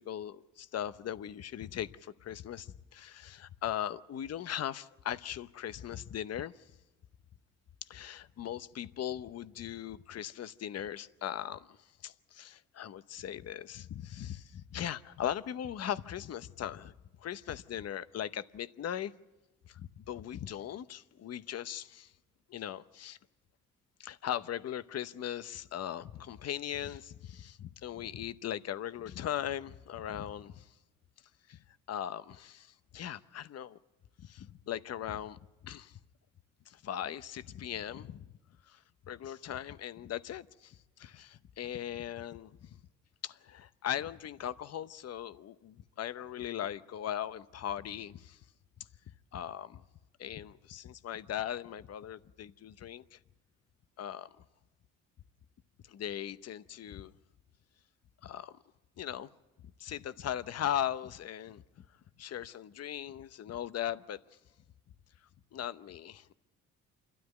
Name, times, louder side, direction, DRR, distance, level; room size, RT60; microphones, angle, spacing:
voice 1, 0.0-6.5 7.9-11.8 12.0-16.9 17.2-19.1 19.7-22.1 22.5-23.2 24.0-30.7 31.5-31.6 31.9-33.8 34.2-36.0 36.7-38.2 38.7-38.8 39.1-42.8 43.2-48.4 49.3-49.8 50.2-53.2 54.0-54.3 55.9-57.1 58.2-58.6 59.0-59.3 59.8-61.8 62.2-64.2 65.5-66.3, left 10 dB, 55° left, 0.9 m, -39 dB
28.0 x 13.0 x 8.1 m
cardioid pair, 90°, 30 cm